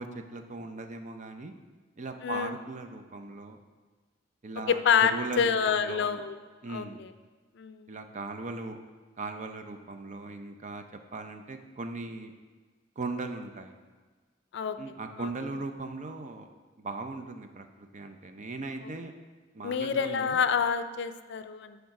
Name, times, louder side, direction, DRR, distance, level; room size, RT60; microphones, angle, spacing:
voice 1, 0.0-1.5 2.0-3.6 4.4-6.2 6.6-7.0 7.9-8.8 9.2-10.8 11.1-12.3 13.0-13.8 14.8-16.5 16.8-19.1 19.5-20.4, right 3 dB, 40° right, 6 dB, 0.5 m, -38 dB
voice 2, 2.2-2.5 4.7-6.4 6.7-7.1 7.6-7.9 14.5-14.8 15.2-15.3 18.8-18.9 19.6-21.8, left 7 dB, 65° left, 10 dB, 0.4 m, -27 dB
10.5 x 3.5 x 4.7 m, 1.4 s
head